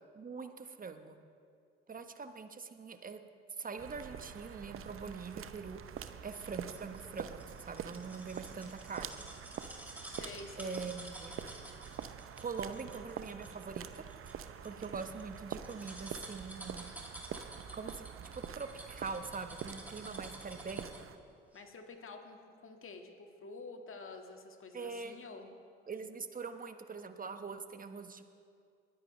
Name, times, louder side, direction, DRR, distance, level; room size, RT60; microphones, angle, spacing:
voice 1, 0.1-1.2 1.9-3.2 3.6-5.8 6.2-9.1 10.6-11.3 12.4-16.9 17.7-18.1 18.3-21.0 24.7-25.1 25.9-28.3, right 5 dB, 30° right, 8 dB, 1.1 m, -43 dB
sound 1, 3.8-21.2, right 8 dB, 45° right, 0.7 m, -46 dB
sound 2, 6.0-21.2 21.5-21.6, right 1 dB, 5° right, 2.2 m, -51 dB
voice 2, 10.1-10.9 21.5-25.5, left 3 dB, 45° left, 4 dB, 1.8 m, -49 dB
21.0 x 10.5 x 3.2 m, 2.3 s
hypercardioid pair, 50°, 29 cm